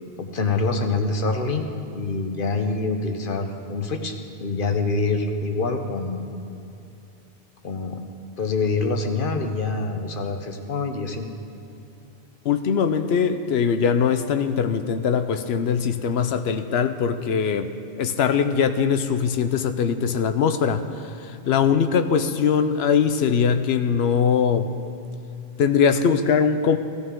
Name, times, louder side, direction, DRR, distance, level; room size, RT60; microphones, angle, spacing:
voice 1, 0.2-1.7 1.9-4.1 4.4-6.3 7.6-8.0 8.4-11.3, left 3 dB, 60° left, 5 dB, 1.1 m, -25 dB
voice 2, 12.4-24.7 25.6-26.8, left 6 dB, 85° left, 9 dB, 0.9 m, -21 dB
16.0 x 14.0 x 3.7 m, 2.7 s
omnidirectional pair, 1.0 m